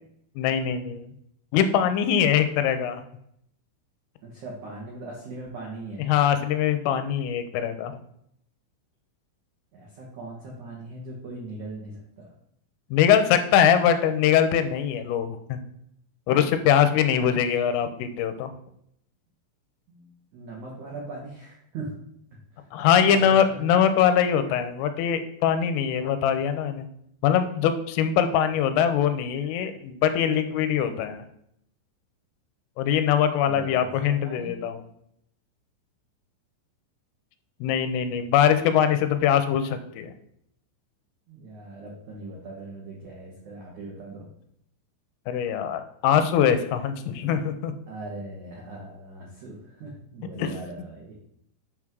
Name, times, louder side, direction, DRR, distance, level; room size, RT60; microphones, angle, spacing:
voice 1, 0.4-1.1 1.5-3.0 6.1-8.0 12.9-15.6 16.3-18.5 22.7-26.9 27.2-31.2 32.8-34.8 37.6-40.1 45.3-47.7 50.4-50.5, left 9 dB, 85° left, 9 dB, 3.2 m, -22 dB
voice 2, 4.2-6.1 9.7-12.3 19.9-21.9 22.5-22.7 23.1-23.7 33.4-34.6 41.3-44.3 47.9-51.1, right 2 dB, 85° right, -3 dB, 1.6 m, -40 dB
8.7 x 3.7 x 6.1 m, 0.72 s
omnidirectional pair, 5.8 m